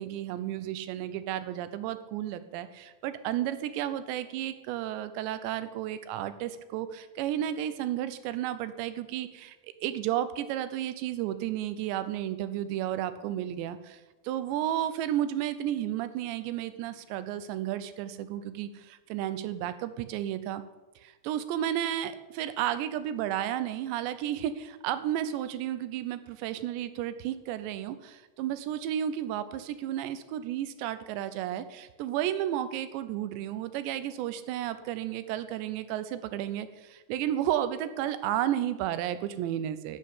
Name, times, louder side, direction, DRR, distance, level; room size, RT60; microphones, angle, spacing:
voice 1, 0.0-9.6 9.8-20.6 21.0-40.0, right 11 dB, 85° right, 12 dB, 3.0 m, -32 dB
12.0 x 7.7 x 8.4 m, 1.1 s
omnidirectional pair, 5.0 m